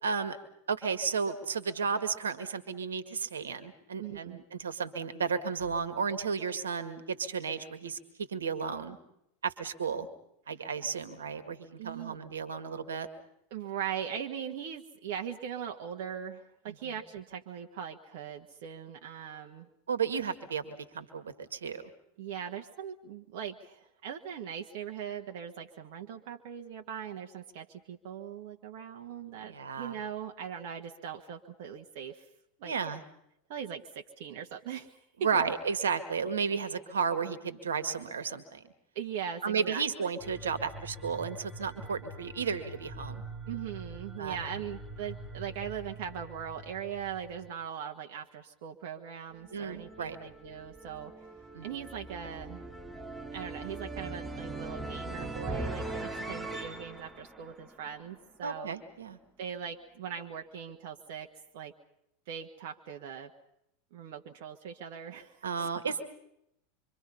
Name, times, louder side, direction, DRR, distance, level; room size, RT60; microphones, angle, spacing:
voice 1, 0.0-0.4 0.7-8.0 8.3-9.0 9.4-10.1 10.5-13.1 16.7-16.8 19.9-21.8 29.5-30.0 32.6-33.0 35.2-38.6 39.4-43.2 44.2-44.4 49.5-50.2 51.5-51.7 58.4-59.2 65.4-66.0, right 6 dB, 80° right, 12 dB, 1.9 m, -33 dB
voice 2, 4.0-4.4 11.8-12.2 13.5-19.7 22.2-32.3 32.6-32.7 33.5-35.0 35.3-35.4 38.9-40.1 43.5-51.2 51.6-52.6 53.3-58.7 59.4-61.3 61.5-61.7 62.3-63.3 63.9-65.7, right 8 dB, 60° right, 3 dB, 1.5 m, -40 dB
sound 1, 5.6-6.6, equal, 85° left, 5.9 m, -49 dB
sound 2, 40.2-47.5, right 1 dB, 15° left, 6.3 m, -45 dB
sound 3, 49.3-58.4, right 2 dB, 5° right, 3.0 m, -41 dB
26.5 x 25.0 x 5.6 m, 0.80 s
figure-of-eight pair, 90°, 0 cm